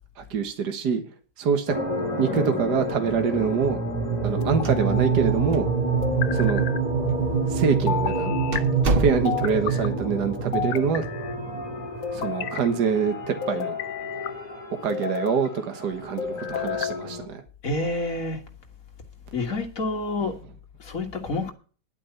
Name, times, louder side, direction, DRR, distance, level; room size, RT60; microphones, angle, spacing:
voice 1, 0.2-1.0 1.4-1.8 2.2-3.8 4.2-5.7 6.3-6.6 7.5-8.4 9.0-11.1 12.1-13.8 14.8-17.4, right 6 dB, 65° right, 1.9 m, -25 dB
sound 1, 1.7-17.2, right 4 dB, 20° left, 2.8 m, -28 dB
sound 2, 2.4-3.0 4.4-5.2 6.0-6.8 7.9-8.6 9.2-9.9 10.5-11.4 12.0-12.7 13.4-14.3 14.9-15.5 16.2-17.0, left 8 dB, 85° left, 1.6 m, -31 dB
sound 3, 4.5-5.3 5.5-5.6 6.4-6.5 7.3-7.5 7.9-8.0 8.5-9.6, right 3 dB, 45° right, 0.8 m, -27 dB
voice 2, 17.6-18.4 19.3-20.3 20.8-21.5, left 2 dB, 50° left, 2.2 m, -28 dB
11.0 x 8.4 x 5.8 m
omnidirectional pair, 1.9 m